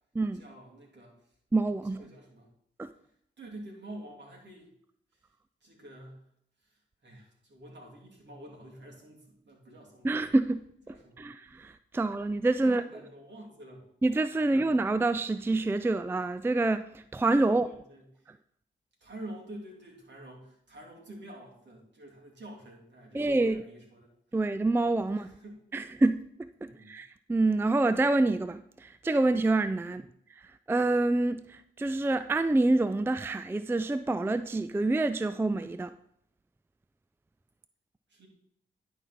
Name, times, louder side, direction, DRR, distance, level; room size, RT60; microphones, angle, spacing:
voice 1, 0.3-1.3 1.9-2.5 3.4-4.7 5.2-5.3 5.6-6.2 6.6-10.1 10.9-11.3 12.6-13.9 14.5-14.7 17.5-18.2 19.0-24.2 25.1-25.9 26.6-26.9 29.9-30.1 38.1-38.3, right 1 dB, 60° right, 2.7 m, -48 dB
voice 2, 1.5-2.0 2.8-2.9 10.0-12.8 14.0-17.7 23.1-23.6 24.3-25.3 25.7-30.0 30.3-35.9, right 2 dB, 10° right, 0.4 m, -27 dB
11.0 x 4.2 x 4.2 m
supercardioid pair, 40°, 21 cm